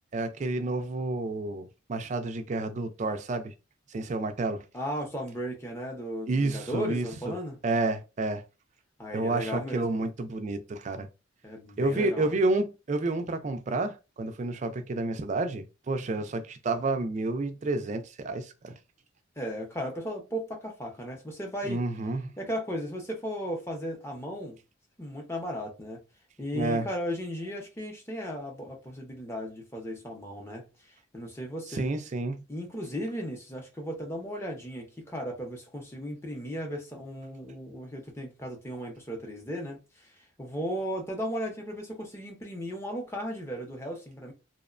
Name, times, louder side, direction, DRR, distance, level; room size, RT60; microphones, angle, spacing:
voice 1, 0.1-3.5 3.9-4.6 6.3-7.1 7.6-8.4 9.1-11.1 11.8-18.8 21.6-22.3 26.5-26.9 31.7-32.4, right 2 dB, 35° right, 0.3 m, -30 dB
voice 2, 4.7-7.6 9.0-10.0 11.4-12.3 19.4-21.8 22.4-24.6 25.0-26.0 26.4-31.9 32.5-44.3, equal, 15° left, 0.6 m, -36 dB
2.8 x 2.1 x 2.4 m
head